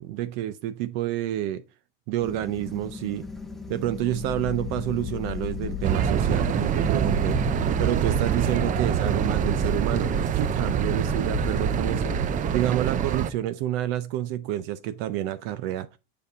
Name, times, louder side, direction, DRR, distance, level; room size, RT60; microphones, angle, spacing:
voice 1, 0.0-1.6 2.1-3.3 3.7-7.4 7.8-12.2 12.5-15.9, right 13 dB, 70° right, 0.6 m, -29 dB
sound 1, 2.2-7.9, left 3 dB, ahead, 0.7 m, -39 dB
sound 2, 3.6-13.1, left 11 dB, 50° left, 1.1 m, -35 dB
sound 3, 5.8-13.3, right 9 dB, 25° right, 0.4 m, -25 dB
6.9 x 5.3 x 3.6 m
supercardioid pair, 135°, 30 cm